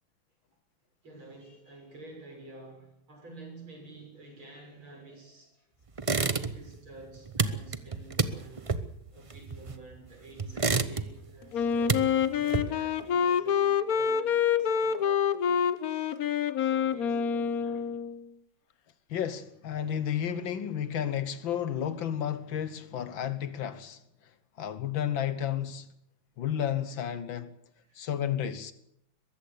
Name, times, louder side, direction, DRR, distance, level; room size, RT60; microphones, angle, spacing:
voice 1, 1.0-5.7 6.1-8.8 9.1-16.1 16.6-18.0 27.8-28.1, right 2 dB, 85° right, 7.7 m, -50 dB
sound 1, 6.0-6.8 7.0-10.0 10.4-11.3 11.6-13.0, right 4 dB, 40° right, 0.4 m, -30 dB
Wind instrument woodwind instrument, 11.5-18.2, left 8 dB, 55° left, 1.2 m, -27 dB
voice 2, 19.1-24.0 24.6-25.9 26.4-27.5 28.0-28.7, left 9 dB, 75° left, 1.8 m, -32 dB
22.5 x 14.5 x 8.4 m
omnidirectional pair, 2.2 m